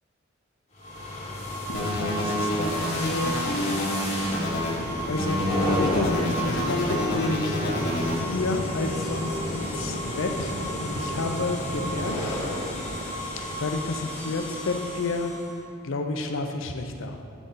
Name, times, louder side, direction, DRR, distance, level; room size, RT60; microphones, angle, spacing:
sound 1, 0.8-15.5, left 1 dB, 35° left, 1.2 m, -31 dB
voice 1, 1.7-4.1 5.1-7.9 8.2-12.2 13.4-15.3 15.8-17.2, left 3 dB, 75° left, 5 dB, 0.5 m, -31 dB
sound 2, 1.7-4.7 5.2-8.2, left 1 dB, 55° left, 1.3 m, -28 dB
7.0 x 4.0 x 3.8 m, 2.4 s
head